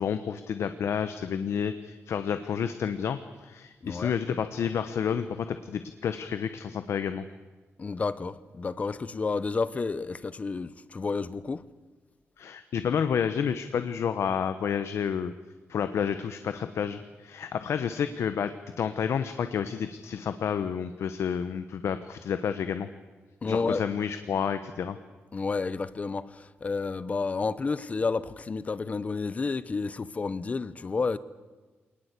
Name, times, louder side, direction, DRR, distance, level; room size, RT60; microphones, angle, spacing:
voice 1, 0.0-7.2 12.4-15.3 15.7-22.9 23.4-25.0, left 7 dB, 80° left, 1.1 m, -30 dB
voice 2, 3.8-4.1 7.8-11.6 23.4-23.8 25.3-31.2, left 4 dB, 30° left, 0.9 m, -30 dB
26.0 x 19.5 x 8.4 m
wide cardioid pair, 165°, 5 cm